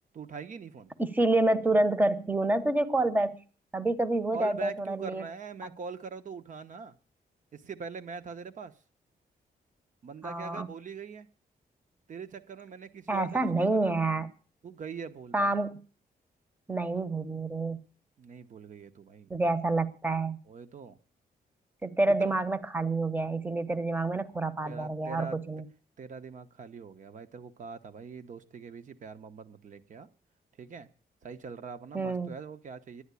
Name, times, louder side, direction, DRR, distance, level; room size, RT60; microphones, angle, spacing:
voice 1, 0.1-0.9 4.3-7.0 7.5-8.7 10.0-11.3 12.1-14.0 14.6-15.6 18.2-19.3 20.5-21.0 22.2-22.3 24.1-24.2 24.6-25.4 26.0-30.1 30.6-30.9 31.2-33.0, right 5 dB, 50° right, 1.1 m, -43 dB
voice 2, 1.0-3.4 3.7-5.2 5.6-5.7 10.2-10.7 13.1-14.3 15.3-15.8 16.7-17.8 19.3-20.4 21.8-25.6 31.9-32.3, right 2 dB, 10° right, 0.9 m, -28 dB
11.5 x 9.9 x 8.3 m
wide cardioid pair, 155°, 16 cm